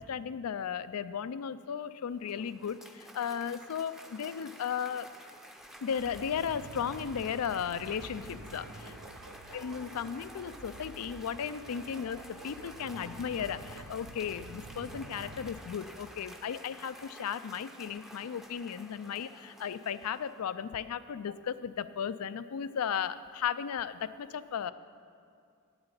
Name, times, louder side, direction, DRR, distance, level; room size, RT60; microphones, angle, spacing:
voice 1, 0.0-5.1 5.8-8.8 9.5-24.7, left 7 dB, 85° left, 14 dB, 0.4 m, -35 dB
Cheering / Applause, 2.0-20.6, equal, ahead, 0.6 m, -51 dB
sound 1, 5.1-5.2 5.6-15.5, right 2 dB, 90° right, 0.8 m, -48 dB
8.7 x 8.0 x 8.1 m, 2.3 s
head